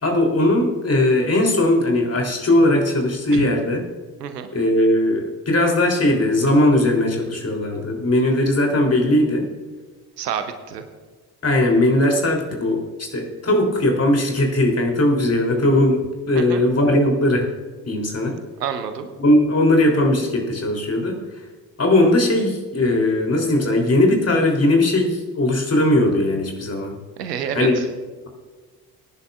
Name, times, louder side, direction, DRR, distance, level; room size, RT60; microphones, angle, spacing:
voice 1, 0.0-3.8 4.5-9.5 11.4-17.5 17.9-18.4 19.2-21.2 21.8-26.9 27.5-27.7, left 1 dB, 30° left, 2 dB, 3.3 m, -19 dB
voice 2, 10.2-10.8 16.3-16.6 18.6-19.1 27.2-27.9, right 8 dB, 80° right, 9 dB, 0.9 m, -28 dB
22.0 x 10.5 x 2.5 m, 1.4 s
figure-of-eight pair, 45°, 48 cm